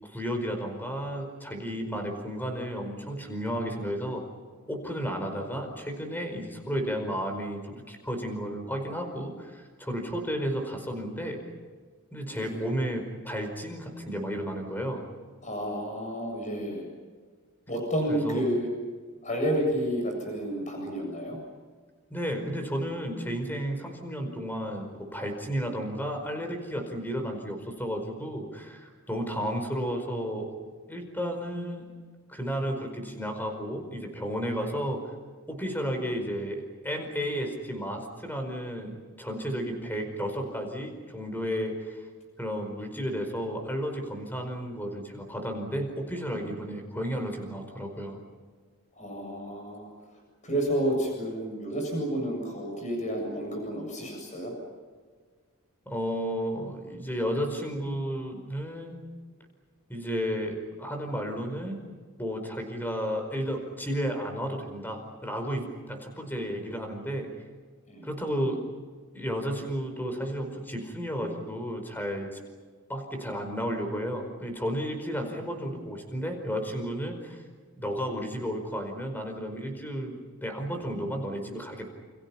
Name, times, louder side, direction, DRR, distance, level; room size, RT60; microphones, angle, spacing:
voice 1, 0.0-4.2 4.7-11.4 12.1-15.1 18.1-18.4 22.1-30.5 30.9-31.9 32.3-35.0 35.5-42.0 42.4-48.2 55.8-59.0 59.9-61.8 62.2-67.3 68.0-68.6 69.1-72.4 72.9-77.4 77.8-81.9, equal, 10° left, 4 dB, 4.9 m, -33 dB
voice 2, 12.3-12.7 15.4-16.9 17.7-18.7 19.2-21.4 48.9-49.9 50.4-54.5 67.9-68.1, equal, 35° left, 2 dB, 7.5 m, -30 dB
29.5 x 29.5 x 5.8 m, 1.5 s
head